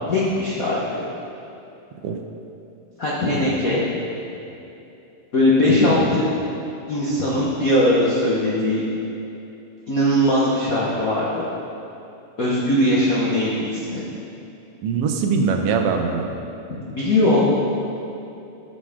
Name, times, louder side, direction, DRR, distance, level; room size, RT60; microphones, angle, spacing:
voice 1, 0.1-0.8 3.0-3.8 5.3-6.3 6.9-8.8 9.9-11.4 12.4-14.0 16.7-17.4, left 1 dB, 75° left, -7 dB, 0.7 m, -20 dB
voice 2, 14.8-16.3, right 5 dB, 75° right, 3 dB, 1.5 m, -21 dB
13.5 x 6.3 x 3.6 m, 2.8 s
omnidirectional pair, 3.4 m